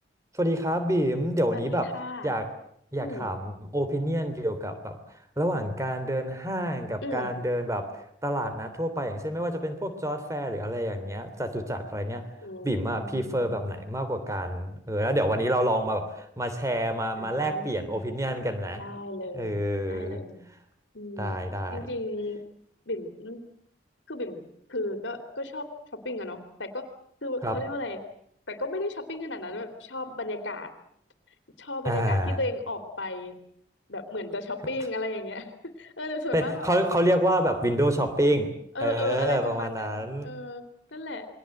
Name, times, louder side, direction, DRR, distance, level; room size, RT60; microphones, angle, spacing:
voice 1, 0.3-1.9 2.2-2.5 2.9-5.0 5.4-12.3 12.6-18.9 19.3-20.2 21.2-21.9 27.4-27.6 31.8-32.4 36.3-38.5 38.8-40.3, equal, 15° right, 9 dB, 3.1 m, -28 dB
voice 2, 1.5-2.3 3.0-3.3 7.0-7.3 12.4-13.7 17.2-18.0 18.7-19.6 19.9-20.4 20.9-21.4 21.7-22.4 22.9-23.4 24.1-24.4 24.7-26.9 27.2-28.0 28.5-30.7 31.6-33.4 33.9-36.7 38.7-40.7 40.9-41.3, left 2 dB, 75° left, 7 dB, 3.0 m, -34 dB
28.5 x 23.0 x 7.8 m, 0.68 s
head